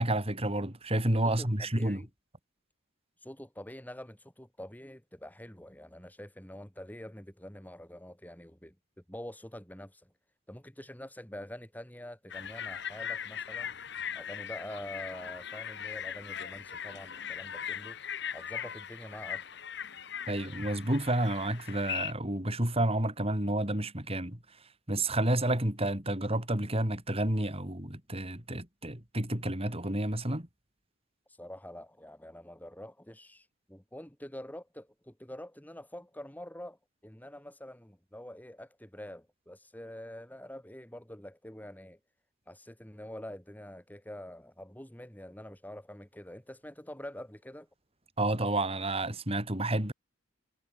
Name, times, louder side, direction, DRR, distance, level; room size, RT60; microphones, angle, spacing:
voice 1, 0.0-2.0 20.3-24.4 24.9-30.5 48.2-49.9, right 1 dB, 30° right, 4.5 m, -30 dB
voice 2, 1.2-2.1 3.2-8.7 9.1-10.1 10.5-13.7 14.1-18.0 18.3-19.5 31.4-42.0 42.5-47.7, left 1 dB, 10° left, 3.5 m, -46 dB
sound 1, 12.3-22.1, left 8 dB, 60° left, 3.8 m, -39 dB
head